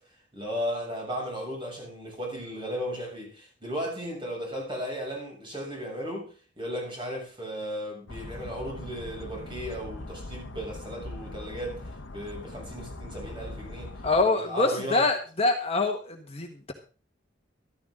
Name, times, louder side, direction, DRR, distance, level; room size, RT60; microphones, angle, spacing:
voice 1, 0.3-13.9 14.3-15.1, equal, 25° right, 7.3 m, -35 dB
sound 1, 8.1-14.2, left 2 dB, 90° left, 1.2 m, -41 dB
voice 2, 14.0-16.7, left 3 dB, 30° left, 1.6 m, -25 dB
14.0 x 13.5 x 3.9 m
head